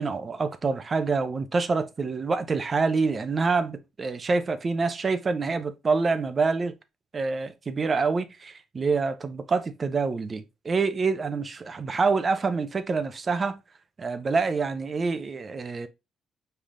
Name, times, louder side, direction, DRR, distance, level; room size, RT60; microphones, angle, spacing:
voice 1, 0.0-6.7 7.1-13.6 14.0-15.9, right 4 dB, 35° right, 0.7 m, -26 dB
5.5 x 3.4 x 2.6 m
cardioid pair, 90°, 0 cm